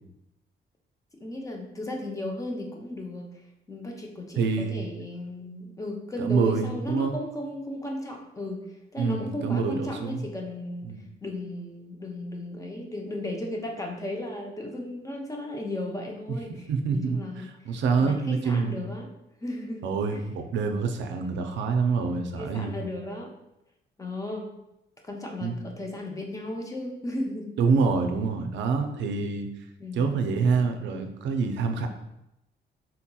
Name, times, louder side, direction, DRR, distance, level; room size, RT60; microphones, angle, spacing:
voice 1, 1.2-3.3 3.7-8.6 8.9-10.9 11.2-16.5 16.9-17.5 18.0-19.1 19.4-19.8 20.1-20.2 21.2-21.3 22.4-23.3 24.0-24.5 25.0-27.5 27.8-27.9 29.8-30.1, left 1 dB, 20° left, 1 dB, 0.5 m, -35 dB
voice 2, 4.4-4.8 6.2-7.2 9.0-10.3 10.8-11.0 16.7-18.9 19.8-22.8 25.4-25.5 27.6-29.5 29.9-31.9, right 5 dB, 75° right, 5 dB, 0.4 m, -26 dB
3.8 x 2.8 x 2.2 m, 0.86 s
cardioid pair, 115°, 19 cm